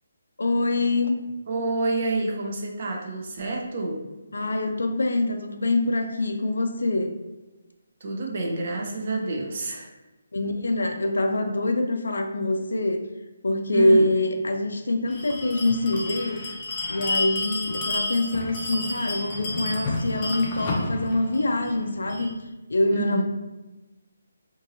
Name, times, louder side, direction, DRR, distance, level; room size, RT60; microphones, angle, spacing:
voice 1, 0.4-1.2 4.3-7.2 10.3-13.0 13.4-16.4 16.9-22.3 22.7-23.2, left 2 dB, 75° left, 5 dB, 0.4 m, -24 dB
voice 2, 1.5-4.0 8.0-9.9 13.7-14.1 22.9-23.2, right 2 dB, 50° right, 0 dB, 0.5 m, -28 dB
Bell, 15.1-22.3, left 2 dB, 30° left, 0.6 m, -31 dB
2.7 x 2.6 x 2.5 m, 1.1 s
figure-of-eight pair, 150°, 0 cm